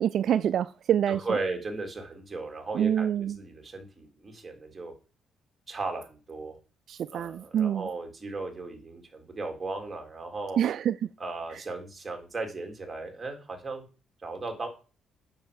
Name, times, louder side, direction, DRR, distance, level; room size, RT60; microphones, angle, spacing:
voice 1, 0.0-1.2 2.7-3.4 6.9-7.9 10.6-11.0, right 9 dB, 65° right, 0.4 m, -26 dB
voice 2, 1.1-4.9 5.7-6.6 7.1-10.6 11.2-13.8 14.2-14.7, right 3 dB, 25° right, 3.7 m, -36 dB
9.2 x 6.6 x 7.1 m
cardioid pair, 90°, 0 cm